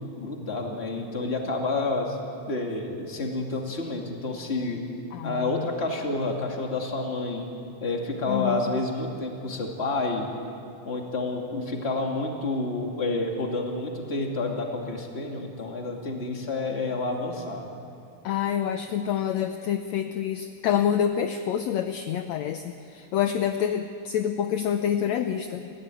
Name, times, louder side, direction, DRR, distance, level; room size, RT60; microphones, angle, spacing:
voice 1, 0.0-2.2 2.5-4.8 5.2-7.5 7.8-10.3 10.8-17.7, left 2 dB, 20° left, 1 dB, 2.3 m, -29 dB
voice 2, 5.1-5.7 8.3-8.7 18.2-25.7, left 9 dB, 75° left, 7 dB, 1.8 m, -27 dB
25.0 x 16.0 x 9.2 m, 2.6 s
omnidirectional pair, 3.7 m